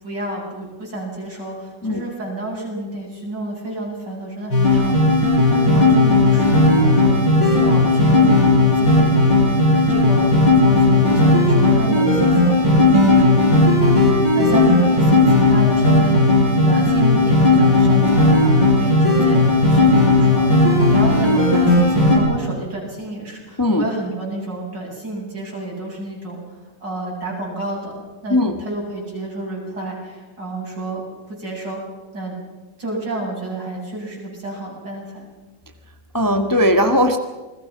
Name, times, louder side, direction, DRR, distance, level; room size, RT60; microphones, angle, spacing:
voice 1, 0.0-8.4 8.7-10.3 10.6-16.3 16.6-26.5 26.8-27.9 28.2-31.0 31.3-31.8 32.1-32.3 32.8-35.2, right 2 dB, 65° right, -2 dB, 8.5 m, -30 dB
sound 1, 4.5-22.2, left 2 dB, 70° left, 7.8 m, -15 dB
voice 2, 36.1-37.2, left 1 dB, 10° left, 6 dB, 1.2 m, -17 dB
28.5 x 20.5 x 6.0 m, 1.2 s
omnidirectional pair, 2.0 m